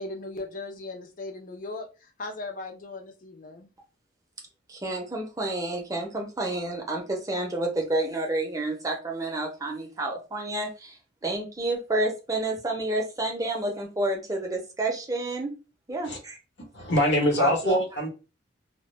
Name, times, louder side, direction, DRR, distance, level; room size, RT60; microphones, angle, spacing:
voice 1, 0.0-3.7, left 2 dB, 45° left, 0.5 m, -38 dB
voice 2, 4.7-15.5 15.9-16.4 17.4-17.8, right 2 dB, 15° right, 0.5 m, -30 dB
voice 3, 16.7-18.1, equal, 60° left, 0.9 m, -23 dB
2.1 x 2.1 x 3.0 m
head